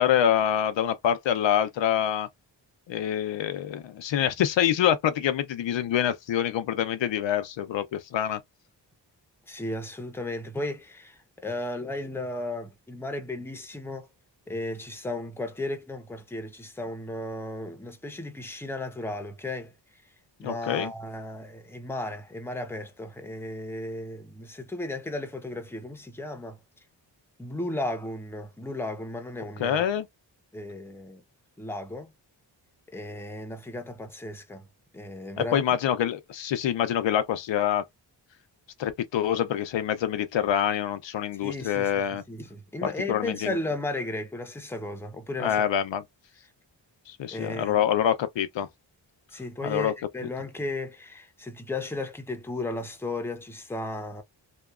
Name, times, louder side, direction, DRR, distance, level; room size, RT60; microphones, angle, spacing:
voice 1, 0.0-2.3 2.9-8.4 20.4-20.9 29.6-30.1 35.4-37.9 38.8-42.2 43.1-43.6 45.4-46.0 47.1-48.7 49.6-49.9, left 10 dB, 85° left, 0.6 m, -26 dB
voice 2, 9.5-14.1 14.5-19.7 20.4-26.6 27.4-29.8 30.5-31.2 31.6-32.1 32.9-34.7 34.9-35.6 41.4-45.7 47.3-47.8 49.3-54.2, left 2 dB, 5° left, 0.6 m, -35 dB
2.8 x 2.2 x 2.3 m
wide cardioid pair, 110°, 43 cm